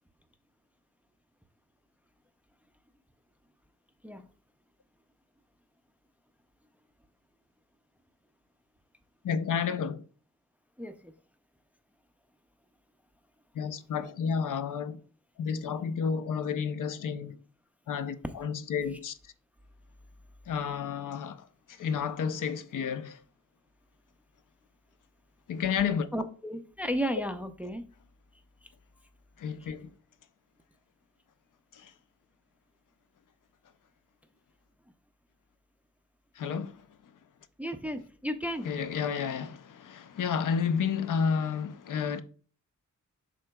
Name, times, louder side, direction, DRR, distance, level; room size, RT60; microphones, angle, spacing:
voice 1, 9.2-10.0 13.5-15.0 15.4-17.4 17.9-19.1 20.5-23.2 25.5-26.1 29.4-29.9 31.7-31.9 36.4-36.8 38.6-42.2, left 6 dB, 80° left, 0.6 m, -31 dB
voice 2, 10.8-11.1 26.1-27.8 29.6-29.7 37.6-38.7, equal, 5° right, 0.4 m, -34 dB
11.0 x 3.8 x 2.2 m
wide cardioid pair, 170°, 31 cm